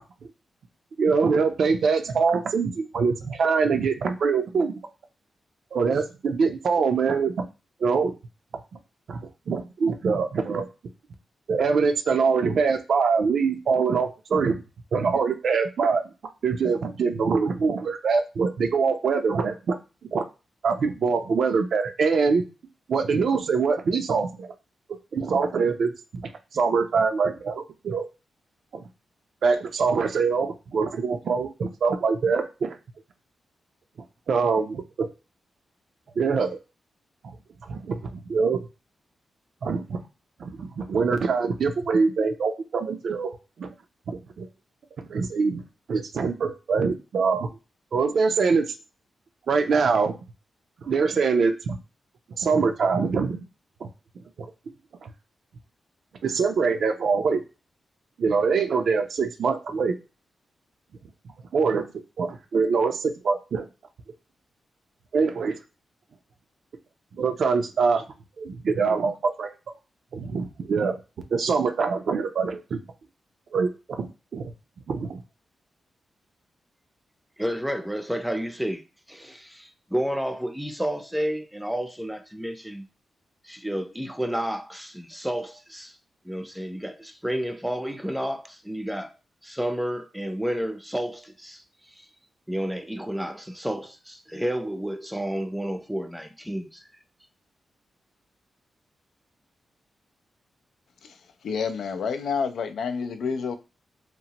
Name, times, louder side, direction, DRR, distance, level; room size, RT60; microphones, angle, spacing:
voice 1, 1.0-4.8 5.7-7.5 7.8-8.1 9.1-9.2 9.5-10.7 11.5-14.6 14.9-16.0 16.4-19.8 20.1-20.2 20.6-22.5 22.9-24.5 25.1-28.1 28.7-28.8 29.4-32.8 34.3-35.1 36.2-36.6 37.2-37.3 37.7-38.6 39.6-40.0 40.4-43.3 43.6-43.7 44.1-44.5 45.1-45.6 45.9-47.5 47.9-48.7 49.5-50.1 50.8-51.8 52.3-53.4 53.8-53.9 55.0-55.1 56.2-57.4 58.2-59.9 61.5-61.9 62.2-63.7 65.1-65.6 67.1-68.0 68.4-69.5 70.1-71.0 71.3-72.8 73.5-74.5 74.9-75.2, right 5 dB, 70° right, 0.4 m, -24 dB
voice 2, 77.4-78.8 79.1-82.9 83.4-86.0 86.2-89.1 89.4-92.1 92.5-96.8, equal, 5° right, 0.5 m, -31 dB
voice 3, 101.4-103.6, left 5 dB, 80° left, 0.3 m, -29 dB
2.9 x 2.1 x 2.8 m
cardioid pair, 65°, 0 cm